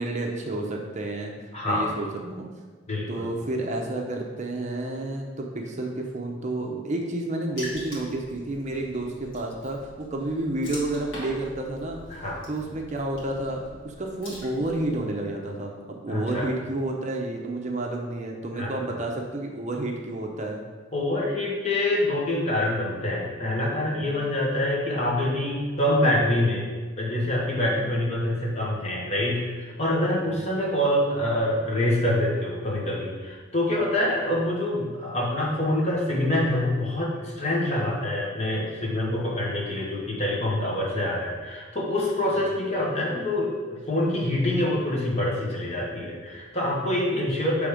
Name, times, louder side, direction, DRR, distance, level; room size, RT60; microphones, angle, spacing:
voice 1, 0.0-1.3 1.6-2.4 3.1-12.0 12.5-20.6 23.8-24.2 27.7-27.9 30.2-30.5 40.9-41.0 42.3-42.5 45.9-46.1, right 2 dB, 40° right, 1 dB, 0.6 m, -30 dB
voice 2, 1.5-1.9 2.9-3.3 12.1-12.4 16.1-16.5 18.6-18.7 20.9-26.6 27.0-47.7, left 1 dB, 35° left, -4 dB, 1.3 m, -26 dB
Water / Splash splatter, 7.6-15.0, equal, 75° left, 2.0 m, -43 dB
6.5 x 3.5 x 4.9 m, 1.4 s
head